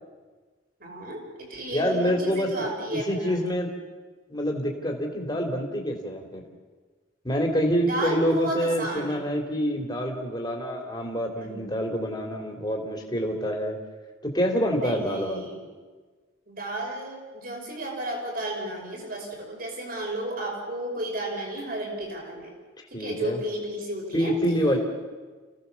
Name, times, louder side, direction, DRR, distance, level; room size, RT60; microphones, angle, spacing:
voice 1, 0.8-3.4 7.9-9.2 11.3-11.8 14.7-15.7 16.5-22.5 22.9-24.3, right 1 dB, 45° right, 0 dB, 5.6 m, -33 dB
voice 2, 1.7-3.7 4.3-6.5 7.2-13.8 14.2-15.5 22.9-23.4 24.1-24.8, equal, 20° left, 1 dB, 3.1 m, -27 dB
29.5 x 17.0 x 7.1 m, 1.4 s
head